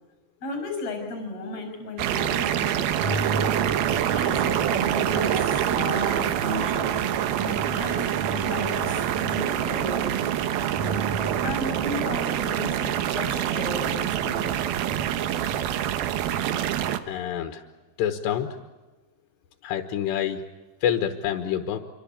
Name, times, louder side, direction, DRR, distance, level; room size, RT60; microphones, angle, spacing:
voice 1, 0.4-3.3 3.9-6.9 7.4-10.2 11.4-14.8, left 3 dB, 40° left, 6 dB, 7.1 m, -35 dB
sound 1, 2.0-17.0, right 11 dB, 70° right, 2.7 m, -26 dB
sound 2, 2.9-16.7, right 3 dB, 50° right, 2.3 m, -35 dB
sound 3, 6.9-13.8, equal, 5° right, 3.5 m, -47 dB
voice 2, 17.1-17.6 18.0-18.6 19.6-20.4 20.8-21.8, left 9 dB, 90° left, 6 dB, 3.4 m, -27 dB
27.5 x 24.0 x 8.6 m, 1.2 s
omnidirectional pair, 4.8 m